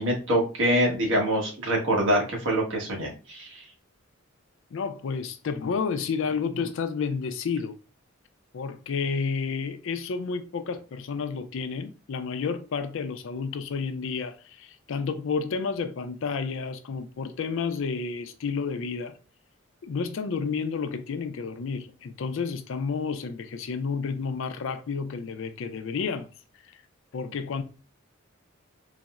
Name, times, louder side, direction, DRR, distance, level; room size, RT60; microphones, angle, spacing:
voice 1, 0.0-3.6, equal, 65° right, 1.2 m, -25 dB
voice 2, 4.7-7.8 8.5-19.1 19.8-26.3 27.1-27.6, left 5 dB, 70° left, 0.4 m, -31 dB
4.0 x 2.0 x 2.3 m
head